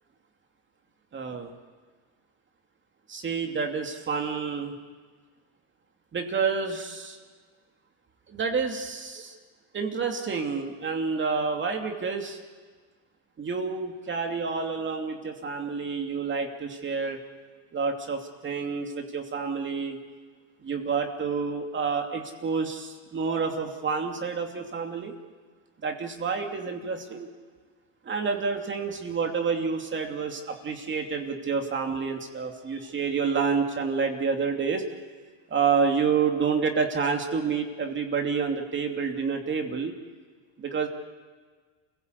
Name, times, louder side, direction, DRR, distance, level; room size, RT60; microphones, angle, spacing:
voice 1, 1.1-1.5 3.1-4.7 6.1-7.2 8.3-9.4 9.7-12.4 13.4-17.2 17.7-20.0 20.6-25.1 25.8-27.3 28.0-34.8 35.5-39.9 40.6-40.9, right 5 dB, 30° right, 3 dB, 2.8 m, -29 dB
28.0 x 16.5 x 8.3 m, 1.5 s
supercardioid pair, 110°, 38 cm